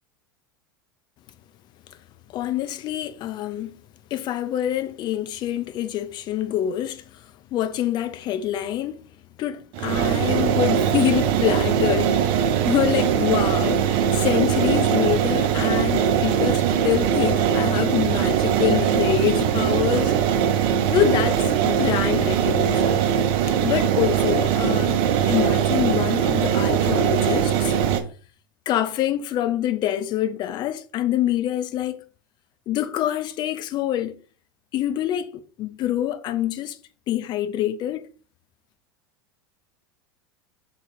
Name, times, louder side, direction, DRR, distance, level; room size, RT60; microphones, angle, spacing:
voice 1, 2.3-3.8 4.1-7.2 7.5-9.0 9.4-20.2 20.9-23.0 23.6-27.7 28.7-32.0 32.7-34.2 34.7-36.8 37.1-38.1, left 12 dB, 40° left, 0.5 m, -26 dB
sound 1, 9.7-28.0, right 8 dB, 45° right, 0.7 m, -21 dB
3.8 x 3.2 x 4.1 m
figure-of-eight pair, 80°, 12 cm